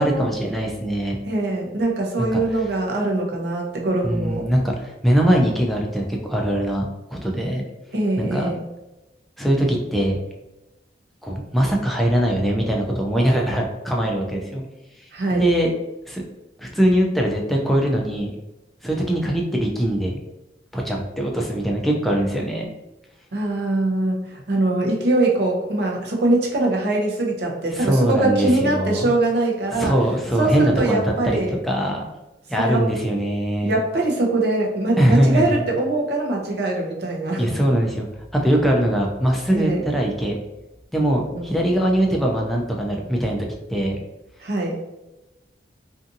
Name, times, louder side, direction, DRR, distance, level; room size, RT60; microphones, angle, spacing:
voice 1, 0.0-1.2 2.2-2.4 4.0-7.6 8.2-8.5 9.4-10.2 11.2-14.6 15.3-15.7 16.1-16.2 16.6-18.3 18.8-20.2 20.7-22.7 27.7-29.1 29.7-32.1 32.5-33.7 35.0-35.6 37.4-38.1 38.3-40.4 40.9-44.0, right 1 dB, ahead, -1 dB, 0.3 m, -21 dB
voice 2, 1.3-4.5 7.9-8.6 15.1-15.4 23.3-29.9 30.4-31.6 32.6-32.8 33.6-37.6 39.5-39.8 41.3-41.5 44.4-44.8, right 2 dB, 70° right, -1 dB, 0.6 m, -22 dB
2.6 x 2.5 x 2.5 m, 1.0 s
head